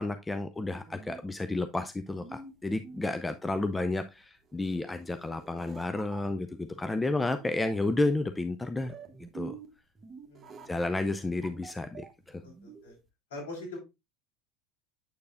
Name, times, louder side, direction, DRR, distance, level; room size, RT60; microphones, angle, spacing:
voice 1, 0.0-8.9 9.3-9.5 10.7-12.4, left 2 dB, 10° left, 9 dB, 0.5 m, -31 dB
sound 1, 0.5-13.1, right 5 dB, 25° right, 1.1 m, -49 dB
voice 2, 10.2-10.8 12.4-13.0 13.3-13.8, left 2 dB, 70° left, -2 dB, 4.4 m, -44 dB
8.1 x 6.6 x 2.5 m, 0.23 s
figure-of-eight pair, 70°, 0 cm